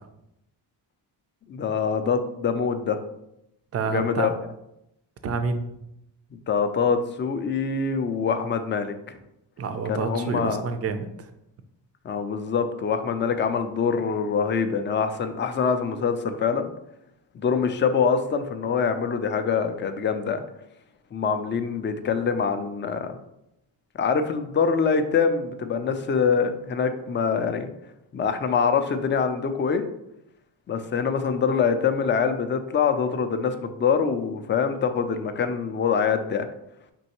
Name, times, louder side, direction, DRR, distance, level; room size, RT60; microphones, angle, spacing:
voice 1, 1.5-3.0 3.8-4.3 6.3-9.2 9.9-10.6 12.0-16.7 17.3-20.4 21.1-23.2 24.0-27.7 28.1-29.8 30.7-36.5, left 6 dB, 25° left, 8 dB, 0.4 m, -24 dB
voice 2, 3.7-4.3 5.2-5.7 9.6-11.3, right 4 dB, 35° right, 9 dB, 0.5 m, -28 dB
5.3 x 3.1 x 2.9 m, 0.83 s
cardioid pair, 110°, 46 cm